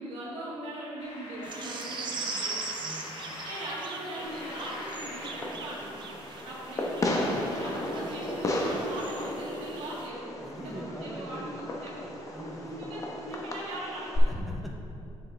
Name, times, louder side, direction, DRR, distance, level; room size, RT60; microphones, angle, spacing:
voice 1, 0.0-2.6 3.4-6.0 6.4-12.1 12.4-14.3, right 1 dB, 75° right, -7 dB, 1.7 m, -40 dB
sound 1, 1.0-13.8, left 2 dB, 65° left, 1.1 m, -47 dB
sound 2, 1.4-10.1, right 4 dB, 45° right, 0.7 m, -41 dB
voice 2, 2.8-3.1 10.4-11.6 12.3-12.7 14.2-14.8, equal, ahead, -1 dB, 0.8 m, -41 dB
Fireworks, 4.2-14.2, left 1 dB, 30° left, 0.9 m, -35 dB
7.1 x 7.0 x 3.4 m, 2.7 s
cardioid pair, 120°, 11 cm